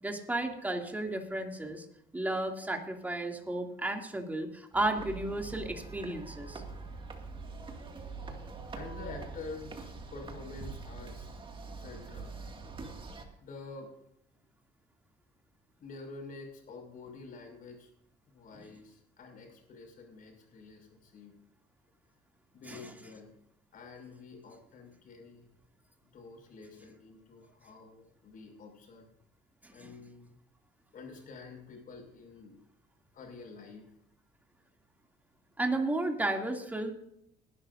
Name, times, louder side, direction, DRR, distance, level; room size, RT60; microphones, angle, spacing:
voice 1, 0.0-1.8 2.1-6.6 18.5-18.7 22.7-22.9 29.6-29.9 35.6-36.9, right 2 dB, 10° right, 2 dB, 2.7 m, -33 dB
sound 1, 4.7-13.2, right 4 dB, 30° right, 2.3 m, -44 dB
voice 2, 8.7-11.4 11.7-12.3 13.4-13.9 15.8-17.9 18.3-21.3 22.5-23.3 23.7-25.5 26.0-29.1 29.7-30.3 30.9-32.6 33.1-33.9, left 3 dB, 55° left, 2 dB, 6.2 m, -48 dB
20.0 x 11.5 x 2.7 m, 0.73 s
cardioid pair, 110°, 17 cm